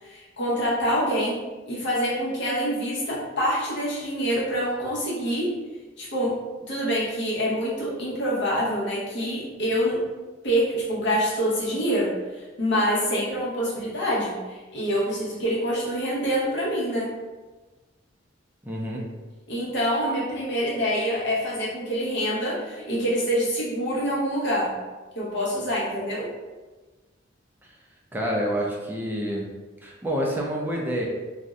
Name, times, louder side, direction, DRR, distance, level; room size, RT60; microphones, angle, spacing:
voice 1, 0.0-1.4 1.7-5.5 6.0-6.4 6.7-10.0 10.4-17.1 19.5-24.7 25.1-26.3, equal, 65° left, -5 dB, 0.9 m, -26 dB
voice 2, 18.6-19.0 28.1-29.5 29.8-31.1, equal, 10° right, -2 dB, 0.4 m, -27 dB
2.6 x 2.1 x 3.5 m, 1.2 s
head